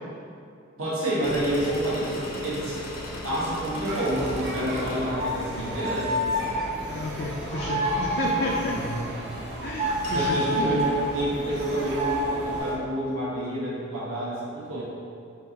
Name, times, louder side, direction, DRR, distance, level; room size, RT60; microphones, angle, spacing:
voice 1, 0.8-2.8 3.2-6.1 8.6-8.8 10.1-14.8, right 1 dB, 70° right, -8 dB, 1.3 m, -28 dB
sound 1, 1.2-10.2, left 1 dB, 75° left, 0.7 m, -40 dB
sound 2, 3.8-12.7, right 1 dB, 55° right, 0.7 m, -36 dB
sound 3, 5.0-9.4 9.8-11.0 11.9-12.6, right 1 dB, 35° right, 0.3 m, -29 dB
voice 2, 6.9-8.7 9.6-10.8, left 3 dB, 50° left, -2 dB, 0.4 m, -31 dB
4.4 x 2.5 x 4.0 m, 2.5 s
head